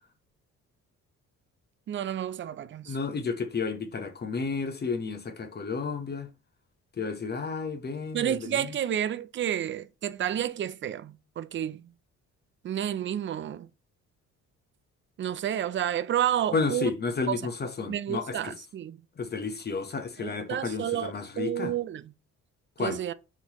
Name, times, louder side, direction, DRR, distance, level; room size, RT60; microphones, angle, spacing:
voice 1, 1.9-3.0 8.1-11.9 12.6-13.7 15.2-16.9 17.3-17.5 17.9-19.0 20.2-22.1 22.8-23.1, right 10 dB, 40° right, 0.4 m, -30 dB
voice 2, 2.9-6.3 7.0-8.3 16.5-18.5 19.2-21.7 22.8-23.0, left 4 dB, 35° left, 0.9 m, -31 dB
4.3 x 4.0 x 2.9 m
cardioid pair, 90°, 30 cm